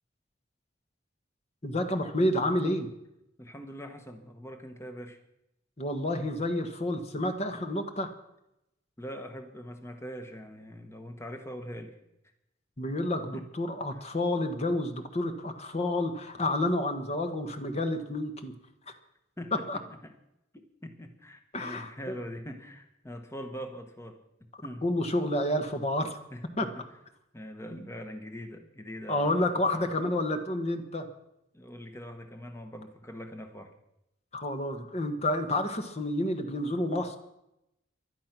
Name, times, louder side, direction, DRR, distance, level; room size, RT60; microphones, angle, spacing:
voice 1, 1.6-2.9 5.8-8.1 12.8-18.5 19.5-19.8 21.5-22.1 24.8-26.2 26.6-26.7 27.7-27.8 29.1-31.1 34.3-37.2, left 1 dB, 35° left, 7 dB, 1.4 m, -29 dB
voice 2, 3.4-5.2 9.0-12.0 13.3-13.5 13.9-14.0 19.4-20.1 20.5-24.2 24.6-24.8 26.3-26.8 27.3-29.9 31.5-33.7, equal, 15° left, 6 dB, 1.2 m, -43 dB
17.0 x 12.0 x 6.0 m, 0.85 s
head